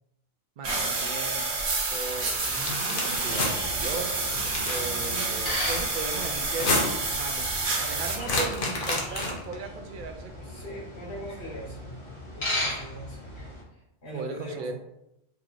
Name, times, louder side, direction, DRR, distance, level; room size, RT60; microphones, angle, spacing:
voice 1, 0.6-1.4 1.9-2.3 2.9-4.2 4.6-6.8 7.1-10.8 14.1-14.7, right 4 dB, 60° right, 5 dB, 0.6 m, -37 dB
sound 1, 0.6-8.2, right 3 dB, 80° right, 1.1 m, -29 dB
sound 2, 2.5-3.5 4.3-4.9 6.4-7.1 8.2-9.5, left 2 dB, 55° left, 1.0 m, -29 dB
sound 3, 3.3-13.6, left 1 dB, 30° left, 1.0 m, -37 dB
voice 2, 10.4-11.9 12.3-13.3 13.7-14.7, right 1 dB, 80° left, -5 dB, 1.9 m, -41 dB
4.8 x 3.0 x 2.5 m, 0.84 s
omnidirectional pair, 1.1 m